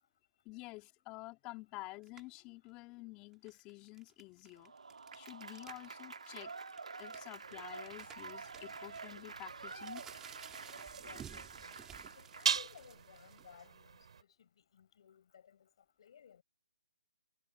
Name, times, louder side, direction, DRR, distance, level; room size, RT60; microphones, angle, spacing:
voice 1, 0.4-4.7 5.1-6.5 7.0-10.2, left 23 dB, 20° left, 2.4 m, -50 dB
sound 1, 2.0-2.4 3.3-5.9 6.2-6.3 6.7-13.7, right 9 dB, 10° right, 2.9 m, -55 dB
Applause / Crowd, 4.6-12.7, right 4 dB, 80° right, 1.9 m, -48 dB
sound 2, 7.4-14.2, right 6 dB, 60° right, 4.0 m, -42 dB
voice 2, 10.9-11.8 12.1-16.4, left 8 dB, 50° left, 6.2 m, -59 dB
hypercardioid pair, 150°, 4 cm